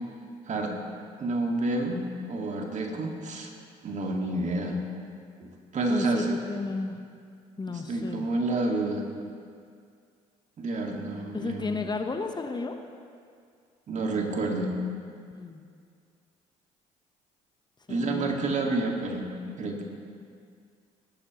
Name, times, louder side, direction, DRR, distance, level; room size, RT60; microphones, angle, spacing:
voice 1, 1.2-3.5 3.8-4.8 5.4-6.4 7.7-9.1 10.6-11.7 13.9-14.7 17.9-19.3 19.6-19.8, right 2 dB, 45° right, 1 dB, 2.1 m, -29 dB
voice 2, 5.9-7.0 7.6-8.3 11.3-12.8 15.3-15.6 17.9-18.5, left 4 dB, 25° left, 5 dB, 1.1 m, -33 dB
18.0 x 11.5 x 3.1 m, 2.2 s
hypercardioid pair, 60°, 17 cm